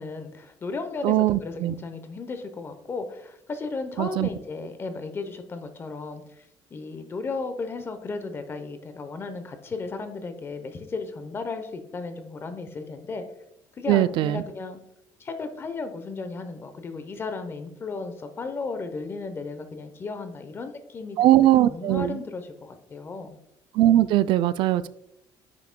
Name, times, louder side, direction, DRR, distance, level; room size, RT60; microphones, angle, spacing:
voice 1, 0.0-6.2 6.7-13.2 13.8-14.8 15.2-23.4, left 4 dB, 25° left, 9 dB, 0.8 m, -35 dB
voice 2, 1.0-1.7 4.0-4.3 13.9-14.4 21.2-22.2 23.7-24.9, right 13 dB, 65° right, 15 dB, 0.4 m, -20 dB
9.2 x 5.8 x 2.2 m, 0.78 s
cardioid pair, 140°, 9 cm